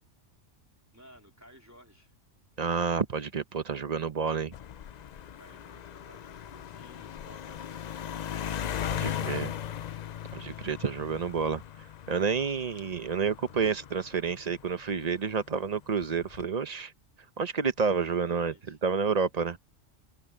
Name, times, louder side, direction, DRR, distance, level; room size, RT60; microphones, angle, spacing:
voice 1, 0.9-2.1 5.3-8.3 8.8-10.0 17.9-18.8, equal, 15° right, 3.7 m, -56 dB
voice 2, 2.6-4.5 8.9-9.5 10.3-11.6 12.1-16.9 17.4-18.5 18.8-19.6, right 5 dB, 40° right, 0.8 m, -29 dB
sound 1, 4.5-15.2 16.0-16.4, left 9 dB, 60° left, 0.4 m, -38 dB
open air
omnidirectional pair, 1.3 m